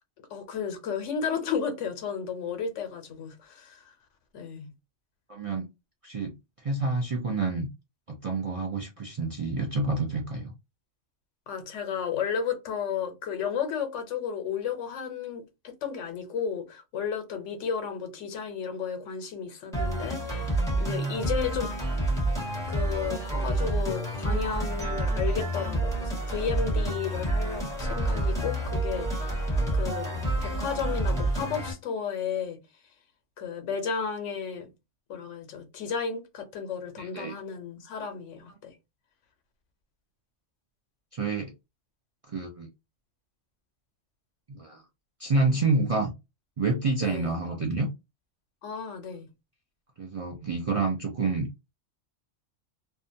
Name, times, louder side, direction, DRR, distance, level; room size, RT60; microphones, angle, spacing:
voice 1, 0.3-3.8 4.3-4.7 11.5-21.7 22.7-29.1 29.7-30.1 30.4-32.6 33.4-34.7 35.1-38.8 47.0-47.4 48.6-49.3, left 6 dB, 85° left, 1.1 m, -33 dB
voice 2, 5.3-5.6 6.0-7.7 8.1-10.5 20.8-20.9 37.0-37.3 41.1-41.5 42.3-42.7 44.5-44.8 45.2-46.1 46.6-47.9 50.0-51.5, right 3 dB, 55° right, 0.3 m, -28 dB
sound 1, 19.7-31.7, right 1 dB, 5° left, 1.2 m, -28 dB
2.7 x 2.2 x 2.5 m
omnidirectional pair, 1.2 m